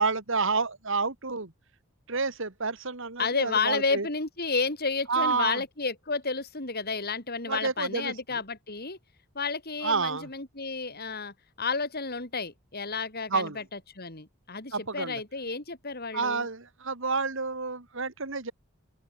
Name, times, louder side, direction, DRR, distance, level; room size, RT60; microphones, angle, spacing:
voice 1, 0.0-1.5 2.1-4.1 5.1-5.6 7.5-8.1 9.8-10.3 13.3-13.6 14.7-15.2 16.1-18.5, right 4 dB, 60° right, 2.2 m, -29 dB
voice 2, 3.2-9.0 9.3-16.5, left 4 dB, 45° left, 4.2 m, -31 dB
open air
head